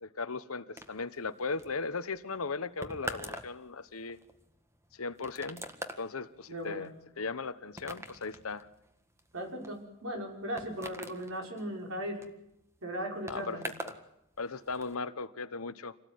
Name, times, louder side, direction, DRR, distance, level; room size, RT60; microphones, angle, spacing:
voice 1, 0.0-4.2 5.0-5.6 6.0-6.9 7.2-8.7 13.3-13.6 13.8-14.0 14.4-15.9, left 4 dB, 75° left, 13 dB, 1.2 m, -37 dB
sound 1, 0.8-14.1 14.3-14.9, right 1 dB, 15° right, 1.8 m, -45 dB
voice 2, 6.5-6.9 9.3-12.3 12.8-13.6, equal, 65° right, 3 dB, 6.0 m, -37 dB
27.5 x 18.0 x 9.5 m, 0.83 s
head